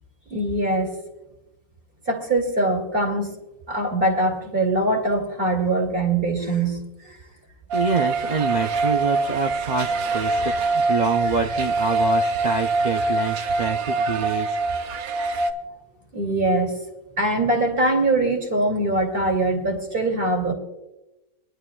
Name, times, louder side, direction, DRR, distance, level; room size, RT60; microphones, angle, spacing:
voice 1, 0.3-1.0 2.1-3.3 3.7-7.2 16.1-16.7 17.2-20.5, right 2 dB, 40° right, 2 dB, 2.3 m, -22 dB
voice 2, 7.7-14.6, right 5 dB, 60° right, 3 dB, 0.4 m, -26 dB
sound 1, 7.7-15.5, right 2 dB, 75° right, 1.2 m, -24 dB
25.5 x 11.0 x 2.3 m, 0.96 s
omnidirectional pair, 1.5 m